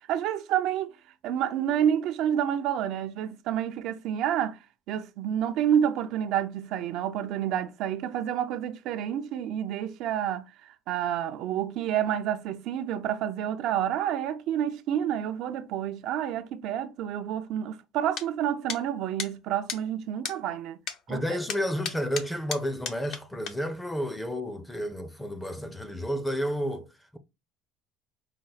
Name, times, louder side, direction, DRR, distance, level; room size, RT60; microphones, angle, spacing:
voice 1, 0.1-0.9 1.2-4.6 4.9-10.5 10.9-20.8 21.1-21.4, right 10 dB, 65° right, 0.5 m, -29 dB
sound 1, 18.2-18.3 18.7-18.8 19.2-19.3 19.7-19.8 20.3-20.4 20.9-21.0 21.5-23.2 23.5-23.6, left 7 dB, 55° left, 0.7 m, -33 dB
voice 2, 21.1-27.2, equal, 5° left, 0.5 m, -31 dB
5.1 x 2.1 x 4.0 m
cardioid pair, 140°, 0 cm